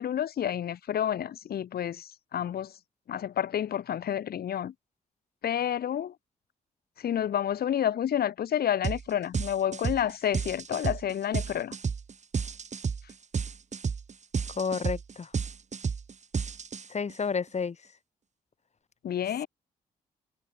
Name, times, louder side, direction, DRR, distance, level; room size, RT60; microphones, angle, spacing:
voice 1, 0.0-2.7 3.1-4.7 5.4-6.1 7.0-11.7 19.0-19.5, left 10 dB, 75° left, 5.3 m, -29 dB
sound 1, 8.8-9.0 9.3-17.1, right 6 dB, 45° right, 2.1 m, -31 dB
voice 2, 14.6-15.3 16.9-17.8, left 5 dB, 45° left, 2.3 m, -30 dB
supercardioid pair, 60°, 16 cm